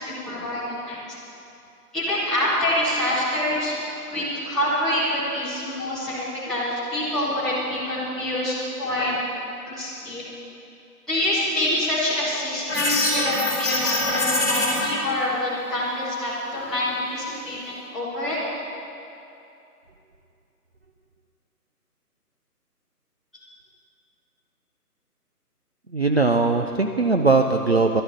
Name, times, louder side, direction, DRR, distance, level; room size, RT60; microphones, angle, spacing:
voice 1, 0.2-0.6 0.9-1.0 1.9-3.7 4.1-9.1 9.7-10.2 11.1-18.4, left 1 dB, ahead, -15 dB, 1.3 m, -26 dB
sound 1, 12.7-14.9, left 2 dB, 15° left, 3.4 m, -23 dB
voice 2, 25.9-28.0, right 3 dB, 40° right, 4 dB, 0.6 m, -20 dB
12.5 x 11.0 x 6.6 m, 2.7 s
figure-of-eight pair, 150°, 47 cm